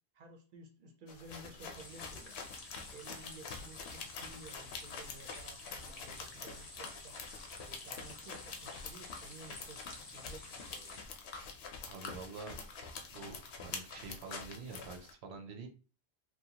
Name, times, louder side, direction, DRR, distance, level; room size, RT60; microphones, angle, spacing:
voice 1, 0.1-2.5 2.9-7.1 7.6-11.0, right 3 dB, 60° right, 2 dB, 0.7 m, -54 dB
sound 1, 1.1-15.1, left 5 dB, 75° left, 0.8 m, -46 dB
sound 2, 1.8-11.0, left 3 dB, 45° left, 0.6 m, -52 dB
voice 2, 11.9-12.6 13.1-15.7, right 4 dB, 85° right, 5 dB, 0.9 m, -47 dB
2.7 x 2.2 x 2.8 m, 0.35 s
omnidirectional pair, 1.1 m